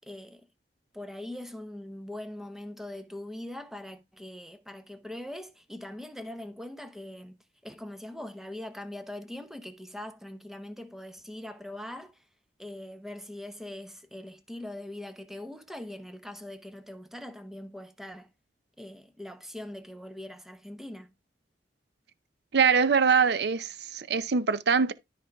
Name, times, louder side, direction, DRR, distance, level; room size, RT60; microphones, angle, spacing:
voice 1, 0.0-0.5 0.9-7.4 7.6-12.2 12.6-18.3 18.8-21.1, left 1 dB, ahead, 1.0 m, -42 dB
voice 2, 22.5-24.9, right 6 dB, 65° right, 0.6 m, -23 dB
13.0 x 5.0 x 3.5 m
head